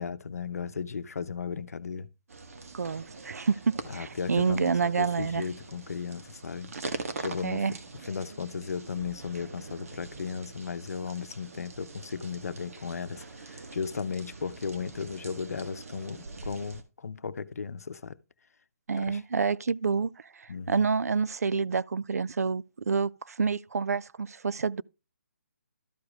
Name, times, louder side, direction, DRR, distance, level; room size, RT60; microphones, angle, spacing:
voice 1, 0.0-2.1 3.4-3.5 3.9-18.2 19.0-19.2 20.5-20.8, left 5 dB, 75° left, 0.8 m, -36 dB
sound 1, 2.3-16.8, right 3 dB, 65° right, 1.6 m, -43 dB
voice 2, 2.7-5.4 7.4-7.7 18.9-24.8, right 5 dB, 85° right, 0.4 m, -28 dB
13.0 x 4.9 x 3.5 m
hypercardioid pair, 155°, 8 cm